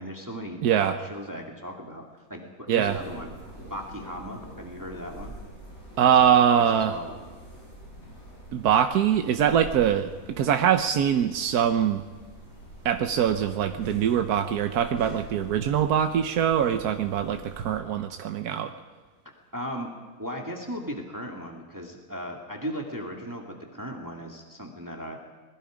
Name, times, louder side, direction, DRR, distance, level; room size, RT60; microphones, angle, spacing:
voice 1, 0.0-2.0 2.3-3.3 3.7-5.3 6.2-7.2 19.5-19.9 20.2-25.2, equal, 10° right, 0 dB, 2.3 m, -37 dB
voice 2, 0.6-1.0 2.7-3.0 6.0-7.0 8.5-12.0 12.8-18.7, right 9 dB, 85° right, 7 dB, 1.4 m, -23 dB
sound 1, 2.8-17.8, right 1 dB, 65° left, 8.6 m, -45 dB
25.5 x 21.0 x 5.1 m, 1.4 s
omnidirectional pair, 1.6 m